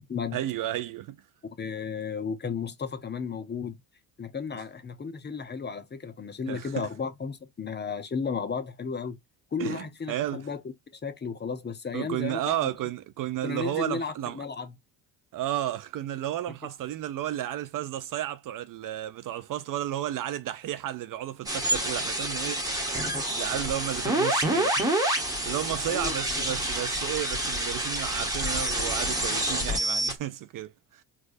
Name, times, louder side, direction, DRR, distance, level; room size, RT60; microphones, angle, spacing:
voice 1, 0.3-1.2 6.5-6.9 9.6-10.4 11.9-14.4 15.3-22.9 23.3-25.2 25.4-31.0, right 12 dB, 50° right, 0.4 m, -33 dB
voice 2, 1.6-3.8 4.2-9.2 9.5-10.6 11.0-12.7 13.4-14.8 16.5-16.6 25.9-26.4, left 5 dB, 25° left, 0.6 m, -34 dB
sound 1, 21.5-30.1, right 1 dB, 10° right, 1.3 m, -28 dB
4.5 x 2.4 x 2.5 m
supercardioid pair, 85°, 45 cm